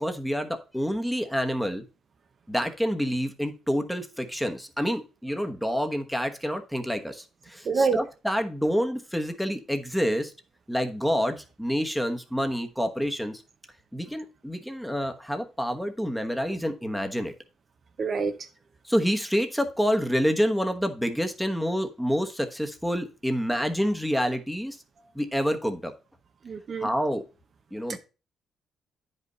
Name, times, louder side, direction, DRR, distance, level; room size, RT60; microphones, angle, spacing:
voice 1, 0.0-1.8 2.5-10.3 10.7-13.4 13.9-17.3 18.8-24.8 25.1-25.9 26.8-27.2 27.7-28.0, equal, ahead, 1.1 m, -28 dB
voice 2, 7.7-8.0 18.0-18.4 26.5-26.9, right 4 dB, 50° right, 0.9 m, -25 dB
9.5 x 5.4 x 4.0 m
cardioid pair, 90°, 0 cm